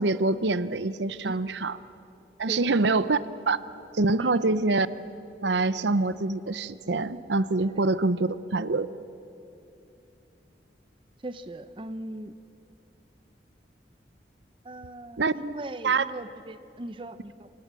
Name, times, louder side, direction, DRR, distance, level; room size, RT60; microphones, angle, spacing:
voice 1, 0.0-1.8 2.4-3.6 3.9-4.9 5.4-8.9 15.2-15.3 15.8-16.0, right 3 dB, 80° right, 15 dB, 0.8 m, -25 dB
voice 2, 2.5-2.8 4.2-4.5 11.2-12.3 14.6-17.5, right 1 dB, 30° right, 12 dB, 0.7 m, -39 dB
27.5 x 26.0 x 7.6 m, 2.7 s
head